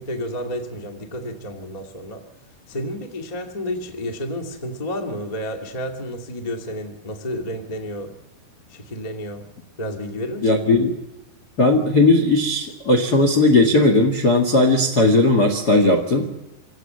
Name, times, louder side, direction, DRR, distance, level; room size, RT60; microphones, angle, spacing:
voice 1, 0.0-2.2 2.7-8.1 8.7-9.4 9.8-10.5, equal, 60° left, 3 dB, 0.4 m, -31 dB
voice 2, 10.4-10.9 11.6-16.2, left 2 dB, 80° left, 3 dB, 0.8 m, -17 dB
26.0 x 17.0 x 7.9 m, 1.0 s
omnidirectional pair, 5.0 m